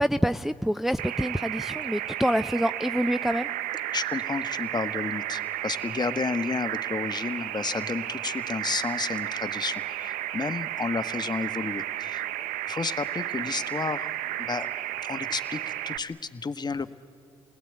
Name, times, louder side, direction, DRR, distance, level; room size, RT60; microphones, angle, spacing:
voice 1, 0.0-3.5, equal, ahead, 11 dB, 0.5 m, -26 dB
sound 1, 1.0-16.0, right 13 dB, 75° right, 0.7 m, -33 dB
voice 2, 3.9-12.2 12.7-14.1 14.4-14.7 15.0-16.9, left 4 dB, 30° left, 11 dB, 1.1 m, -31 dB
29.0 x 19.5 x 9.0 m, 2.5 s
hypercardioid pair, 50°, 14 cm